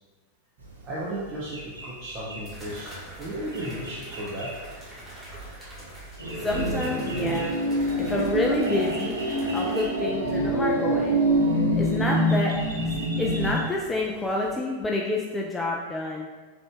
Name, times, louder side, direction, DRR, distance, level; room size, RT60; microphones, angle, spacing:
sound 1, 0.6-14.5, right 2 dB, 75° right, 0.6 m, -43 dB
voice 1, 0.8-2.9 3.2-4.5, right 1 dB, 30° right, -6 dB, 0.6 m, -34 dB
sound 2, 1.4-1.5 2.4-9.9, right 1 dB, 10° right, 1.3 m, -44 dB
sound 3, 6.2-13.5, right 1 dB, 85° left, 0.6 m, -25 dB
voice 2, 6.4-7.5 8.1-9.2 9.5-11.2 11.7-12.5 13.2-16.3, left 2 dB, 10° left, -2 dB, 0.4 m, -28 dB
3.8 x 3.4 x 2.2 m, 1.4 s
figure-of-eight pair, 90°, 0 cm